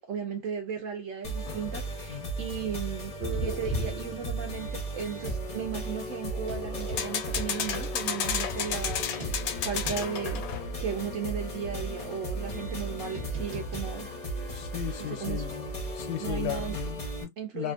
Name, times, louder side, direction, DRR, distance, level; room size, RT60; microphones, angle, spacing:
voice 1, 0.0-3.1 3.4-9.1 9.6-10.4 10.8-14.1 15.0-15.5 16.2-16.8 17.4-17.7, right 7 dB, 70° right, 0.8 m, -35 dB
sound 1, 1.2-17.2, right 1 dB, 45° left, 0.5 m, -36 dB
sound 2, 1.4-2.0 6.8-10.8, left 8 dB, 70° left, 0.9 m, -33 dB
sound 3, 3.2-5.5 6.3-10.6 11.0-11.1 11.8-15.3, right 1 dB, 35° right, 1.0 m, -39 dB
voice 2, 14.5-15.6 15.9-17.3 17.5-17.7, left 12 dB, 85° left, 1.3 m, -35 dB
2.8 x 2.4 x 2.4 m
omnidirectional pair, 1.8 m